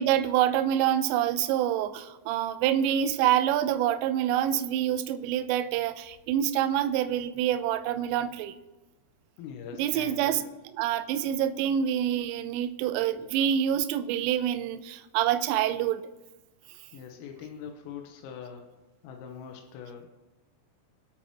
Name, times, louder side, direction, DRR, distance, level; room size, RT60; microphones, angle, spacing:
voice 1, 0.0-8.6 9.7-10.4 10.7-16.0, right 10 dB, 90° right, 10 dB, 2.5 m, -26 dB
voice 2, 9.4-10.5 16.9-18.7 19.0-20.1, left 7 dB, 90° left, 3 dB, 3.7 m, -42 dB
24.0 x 8.6 x 3.0 m, 1.1 s
omnidirectional pair, 5.9 m